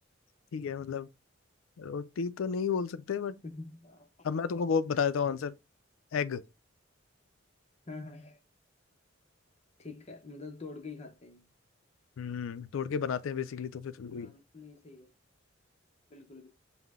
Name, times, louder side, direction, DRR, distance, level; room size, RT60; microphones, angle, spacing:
voice 1, 0.5-1.1 1.8-3.4 4.2-5.5 6.1-6.4 12.2-14.3, left 6 dB, 80° left, 0.4 m, -32 dB
voice 2, 3.4-4.5 7.9-8.4 9.8-11.5 14.1-15.1 16.1-16.5, left 3 dB, 30° left, 0.7 m, -46 dB
5.6 x 2.1 x 3.5 m
head